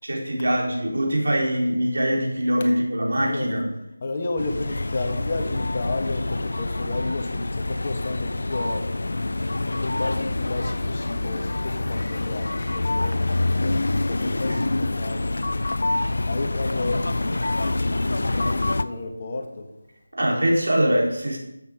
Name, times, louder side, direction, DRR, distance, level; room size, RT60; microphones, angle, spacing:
voice 1, 0.0-3.6 20.1-21.4, equal, 70° right, 4.2 m, -23 dB
voice 2, 3.2-3.6 4.0-8.9 9.8-19.7, left 2 dB, 35° left, 1.7 m, -32 dB
sound 1, 4.4-18.8, left 2 dB, 70° left, 0.6 m, -26 dB
13.0 x 8.1 x 5.2 m
figure-of-eight pair, 170°, 0 cm